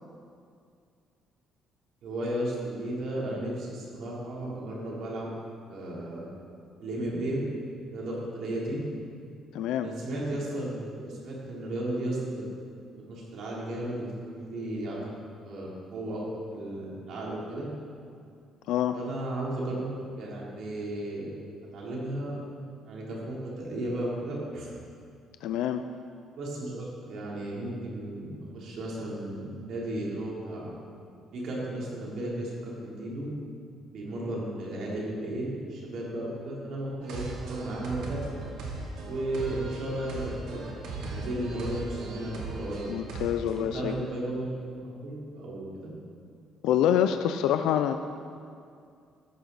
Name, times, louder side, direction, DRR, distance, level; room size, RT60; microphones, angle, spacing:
voice 1, 2.0-5.3 5.7-6.2 6.8-7.4 7.9-8.8 9.8-12.4 13.1-15.0 15.4-16.2 16.5-17.7 18.9-19.9 20.2-21.3 21.7-22.4 22.8-24.7 26.4-30.7 31.3-33.3 33.9-38.2 39.0-40.6 41.0-42.9 43.6-45.9, right 1 dB, 65° right, -5 dB, 3.5 m, -34 dB
voice 2, 9.5-9.9 18.7-19.0 25.4-25.8 42.9-43.9 46.6-48.0, left 10 dB, 85° left, 8 dB, 0.5 m, -26 dB
sound 1, 37.0-43.7, right 3 dB, 85° right, 2.5 m, -38 dB
13.5 x 12.5 x 4.2 m, 2.3 s
cardioid pair, 135°, 0 cm